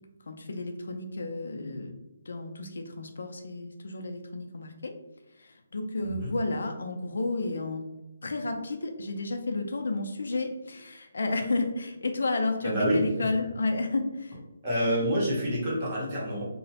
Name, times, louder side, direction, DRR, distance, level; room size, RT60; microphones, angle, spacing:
voice 1, 0.3-1.9 2.3-4.9 5.4-7.9 8.2-14.4, left 2 dB, 70° left, 5 dB, 0.4 m, -31 dB
voice 2, 12.6-13.0 14.6-16.4, equal, 20° right, -5 dB, 0.7 m, -27 dB
2.9 x 2.0 x 2.7 m, 0.97 s
hypercardioid pair, 175°, 0 cm